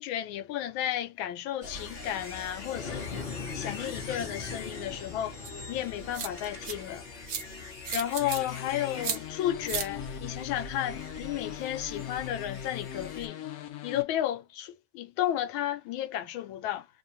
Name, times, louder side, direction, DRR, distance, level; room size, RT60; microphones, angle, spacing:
voice 1, 0.0-3.2 3.5-5.4 5.7-7.1 7.9-13.4 13.8-16.9, left 12 dB, 85° left, 1.4 m, -33 dB
sound 1, 1.6-13.3, left 4 dB, 40° left, 0.9 m, -41 dB
sound 2, 5.4-5.5 6.1-6.7 7.3-7.4 7.8-8.4 9.0-9.2 9.7-9.9, right 7 dB, 60° right, 1.0 m, -33 dB
sound 3, 8.2-14.0, left 11 dB, 65° left, 0.9 m, -40 dB
3.3 x 2.2 x 2.6 m
omnidirectional pair, 2.2 m